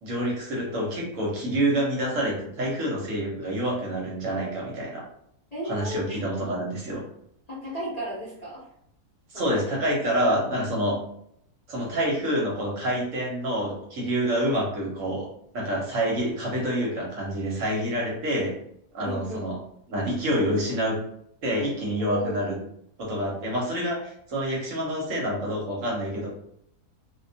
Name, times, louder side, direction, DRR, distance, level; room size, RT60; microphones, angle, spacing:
voice 1, 0.0-5.0 5.7-7.0 9.3-11.0 11.7-15.3 15.5-18.5 18.9-19.6 19.9-21.0 21.4-22.6 23.0-26.3, right 1 dB, 65° right, -2 dB, 0.9 m, -27 dB
voice 2, 5.5-6.2 7.5-8.7 9.3-9.7 14.3-14.4 19.0-19.5 22.0-22.6, equal, 40° left, -9 dB, 0.6 m, -34 dB
2.4 x 2.1 x 2.6 m, 0.71 s
omnidirectional pair, 1.6 m